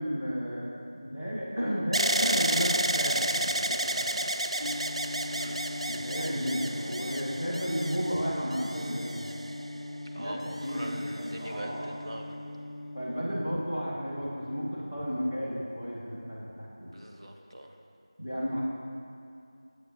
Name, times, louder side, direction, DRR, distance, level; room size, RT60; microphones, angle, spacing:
voice 1, 0.0-4.3 5.9-9.3 10.2-12.0 12.9-16.9 18.2-18.6, equal, 25° right, -10 dB, 1.5 m, -33 dB
sound 1, 1.9-9.9 10.6-11.3, right 1 dB, 85° right, 0.3 m, -31 dB
sound 2, 4.6-13.6, left 1 dB, 60° left, 0.4 m, -40 dB
voice 2, 10.1-12.4 16.9-17.8, right 1 dB, 55° right, 1 dB, 0.8 m, -41 dB
8.9 x 7.8 x 2.9 m, 2.5 s
figure-of-eight pair, 175°, 3 cm